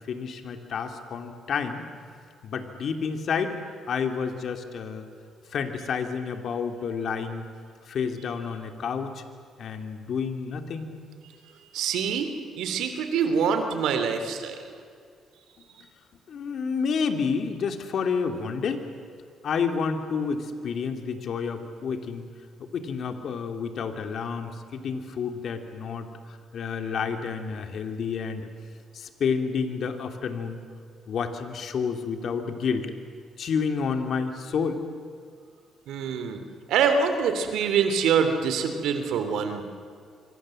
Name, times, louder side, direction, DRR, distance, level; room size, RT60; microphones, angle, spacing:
voice 1, 0.1-1.8 2.4-3.6 3.9-5.0 5.5-7.4 7.9-9.2 9.6-11.1 16.3-18.8 19.4-22.2 22.7-28.5 28.9-30.6 31.1-32.9 33.4-34.8, left 6 dB, 60° left, 6 dB, 2.7 m, -29 dB
voice 2, 11.7-12.3 12.6-14.6 35.9-36.4 36.7-39.6, right 6 dB, 85° right, 7 dB, 2.9 m, -25 dB
26.5 x 25.0 x 7.8 m, 2.2 s
cardioid pair, 90°, 0 cm